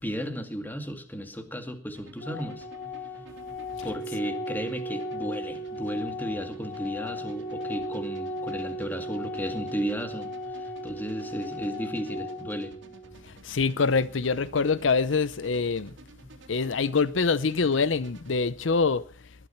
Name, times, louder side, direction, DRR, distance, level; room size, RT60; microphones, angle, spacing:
voice 1, 0.0-2.7 3.8-12.7, equal, 10° left, 2.2 m, -34 dB
sound 1, 1.9-18.3, right 1 dB, 65° right, 2.7 m, -52 dB
Organ, 2.2-13.2, equal, 50° left, 3.8 m, -36 dB
voice 2, 13.4-15.9 16.5-19.0, left 4 dB, 75° left, 0.7 m, -25 dB
20.0 x 12.0 x 5.8 m
head